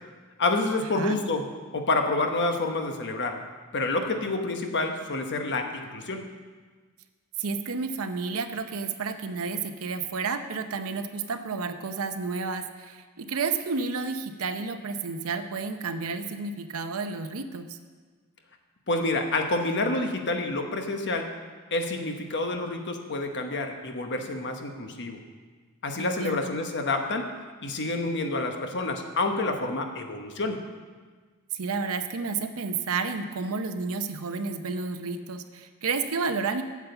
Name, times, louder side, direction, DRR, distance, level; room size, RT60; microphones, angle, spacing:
voice 1, 0.4-3.4 3.7-6.2 18.9-21.3 21.7-25.2 25.8-27.3 27.6-30.6, left 2 dB, 55° left, 4 dB, 1.1 m, -28 dB
voice 2, 7.4-17.8 26.0-26.5 31.5-36.6, right 4 dB, 70° right, 8 dB, 0.7 m, -31 dB
9.2 x 7.3 x 6.9 m, 1.5 s
head